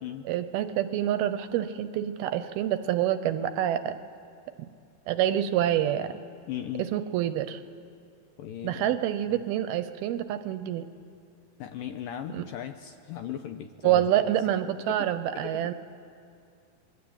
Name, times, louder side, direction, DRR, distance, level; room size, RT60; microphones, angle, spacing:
voice 1, 0.3-4.0 5.1-6.2 6.8-7.6 8.6-10.9 12.3-12.4 13.8-15.7, right 11 dB, 75° right, 11 dB, 2.5 m, -27 dB
voice 2, 6.5-6.9 8.4-9.0 9.3-9.5 11.6-14.3 14.9-15.0 15.3-15.7, left 10 dB, 80° left, 7 dB, 2.1 m, -38 dB
28.0 x 23.0 x 8.8 m, 2.5 s
omnidirectional pair, 4.8 m